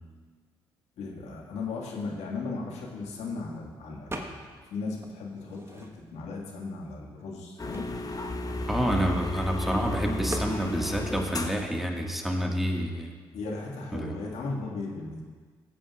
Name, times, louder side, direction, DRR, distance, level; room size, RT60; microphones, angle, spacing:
voice 1, 1.0-7.9 13.3-15.2, left 3 dB, 70° left, -2 dB, 1.9 m, -36 dB
sound 1, 4.1-4.7 5.0-6.3 6.9-7.0 7.2-9.5 10.3-10.6, right 1 dB, 20° right, 1.3 m, -41 dB
sound 2, 7.6-11.7, left 1 dB, 30° left, 1.0 m, -33 dB
voice 2, 8.7-13.1 13.9-14.2, equal, ahead, 1 dB, 1.7 m, -28 dB
15.0 x 8.4 x 2.4 m, 1.5 s
hypercardioid pair, 50°, 11 cm